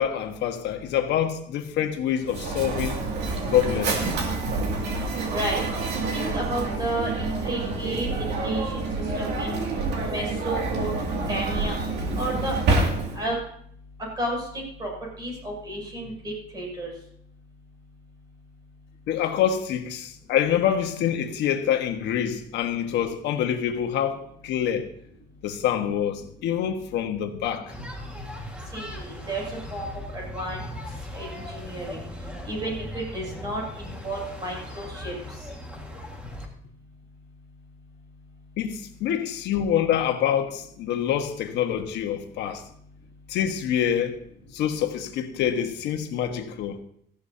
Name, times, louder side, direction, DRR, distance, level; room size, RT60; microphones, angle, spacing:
voice 1, 0.0-3.0 3.5-4.1 19.1-24.9 25.4-27.7 38.6-42.6 43.3-44.2 44.5-46.8, left 9 dB, 85° left, 1.4 m, -26 dB
Mechanisms, 2.2-13.4, right 3 dB, 75° right, 2.4 m, -27 dB
voice 2, 5.3-5.6 6.1-8.9 9.1-9.6 10.0-10.9 11.3-11.7 12.2-12.6 13.1-13.4 14.2-14.9 15.2-16.9 28.7-29.4 29.7-30.6 31.1-32.0 32.4-35.1 35.4-35.5, right 1 dB, 25° right, 6.8 m, -32 dB
sound 1, 27.7-36.5, left 1 dB, 5° right, 1.8 m, -39 dB
17.5 x 15.0 x 2.8 m
cardioid pair, 175°, 18 cm